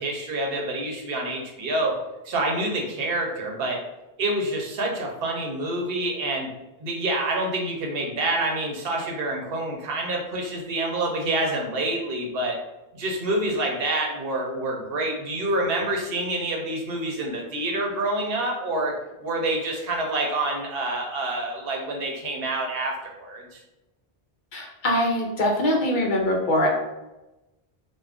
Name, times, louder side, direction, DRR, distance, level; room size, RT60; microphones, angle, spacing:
voice 1, 0.0-1.9 2.2-3.8 4.2-6.5 6.8-12.6 12.9-18.9 19.2-23.6, right 2 dB, 70° right, 1 dB, 0.8 m, -27 dB
voice 2, 24.5-26.7, left 1 dB, 60° left, 0 dB, 0.6 m, -23 dB
2.4 x 2.2 x 3.4 m, 0.98 s
omnidirectional pair, 1.0 m